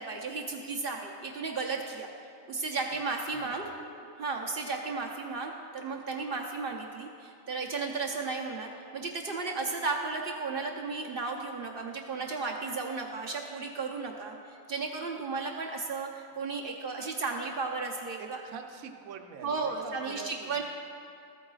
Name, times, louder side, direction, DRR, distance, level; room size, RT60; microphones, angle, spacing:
voice 1, 0.0-2.1 2.5-3.7 4.2-18.4 19.4-20.6, right 4 dB, 55° right, 1 dB, 0.7 m, -34 dB
voice 2, 3.3-3.8 18.2-20.6, right 7 dB, 75° right, 5 dB, 1.0 m, -45 dB
14.5 x 8.7 x 2.4 m, 2.5 s
omnidirectional pair, 1.5 m